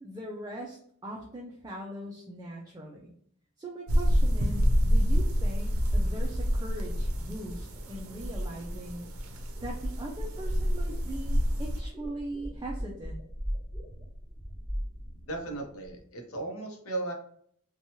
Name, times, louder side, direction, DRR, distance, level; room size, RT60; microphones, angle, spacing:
voice 1, 0.0-3.1 3.6-9.1 9.6-13.2, right 1 dB, 20° right, -3 dB, 0.3 m, -40 dB
sound 1, 3.9-11.8, equal, 75° right, 0.5 m, -28 dB
sound 2, 5.8-16.0, equal, ahead, 1.0 m, -39 dB
voice 2, 15.2-17.1, right 2 dB, 75° left, 2 dB, 0.7 m, -36 dB
2.8 x 2.2 x 2.8 m, 0.64 s
head